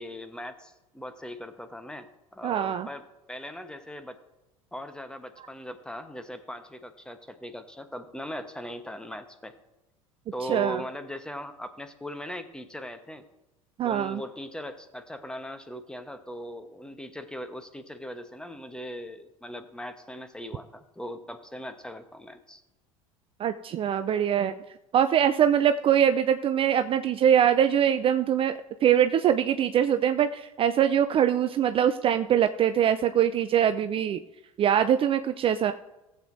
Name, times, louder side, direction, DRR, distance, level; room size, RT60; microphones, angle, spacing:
voice 1, 0.0-4.2 4.7-9.5 10.3-13.2 13.8-22.6, equal, 5° left, 9 dB, 1.1 m, -39 dB
voice 2, 2.4-2.9 10.5-10.8 13.8-14.2 23.4-24.5 24.9-28.5 28.8-34.2 34.6-35.7, right 9 dB, 30° right, 9 dB, 0.4 m, -23 dB
18.0 x 7.9 x 2.7 m, 0.99 s
figure-of-eight pair, 70°, 18 cm